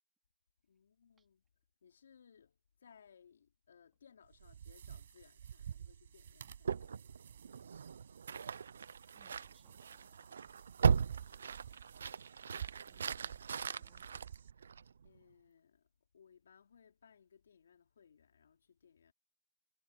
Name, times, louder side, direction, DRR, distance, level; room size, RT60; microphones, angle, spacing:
voice 1, 0.6-1.4 1.8-7.2 11.2-12.0 15.0-15.9 16.1-19.1, left 7 dB, 75° left, 4.5 m, -65 dB
sound 1, 4.2-14.5, right 9 dB, 50° right, 7.6 m, -52 dB
sound 2, 6.6-15.1, right 6 dB, 85° right, 0.6 m, -38 dB
voice 2, 9.1-10.3 13.7-14.1, right 5 dB, 5° right, 3.7 m, -72 dB
hypercardioid pair, 180°, 0 cm